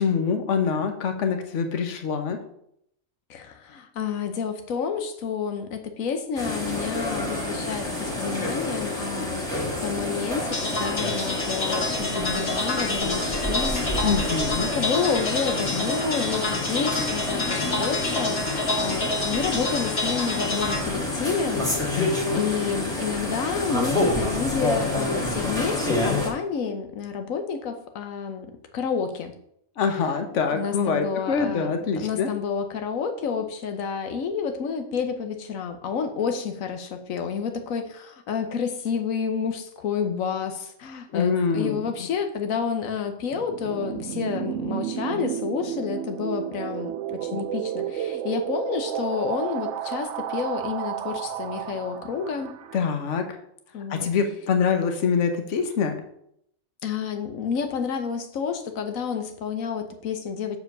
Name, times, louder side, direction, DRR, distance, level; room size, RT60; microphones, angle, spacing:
voice 1, 0.0-2.4 14.0-14.7 21.9-22.4 29.8-32.3 41.1-41.9 47.3-47.4 52.7-53.4 53.9-56.0, left 6 dB, 65° left, 6 dB, 1.3 m, -25 dB
voice 2, 3.3-14.5 14.7-21.7 22.1-29.3 29.8-52.5 53.7-54.5 56.8-60.6, left 6 dB, 90° left, 7 dB, 1.2 m, -30 dB
sound 1, 6.3-26.3, left 2 dB, 5° left, 1.9 m, -28 dB
sound 2, 10.5-20.8, left 2 dB, 50° left, 1.6 m, -29 dB
sound 3, 43.3-52.8, right 10 dB, 70° right, 0.8 m, -32 dB
6.9 x 4.8 x 6.5 m, 0.74 s
omnidirectional pair, 1.4 m